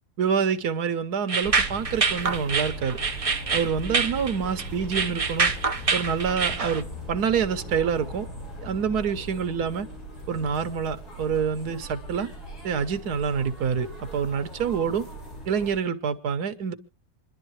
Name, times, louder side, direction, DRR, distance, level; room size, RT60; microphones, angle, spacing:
voice 1, 0.2-3.0 3.5-5.5 5.9-8.3 8.6-9.9 10.3-12.3 12.6-15.1 15.5-16.7, right 6 dB, 85° right, 1.5 m, -27 dB
sound 1, 1.3-6.8, right 4 dB, 35° right, 0.6 m, -26 dB
sound 2, 1.4-15.8, right 1 dB, 85° left, 6.4 m, -39 dB
26.5 x 11.0 x 3.1 m
omnidirectional pair, 1.6 m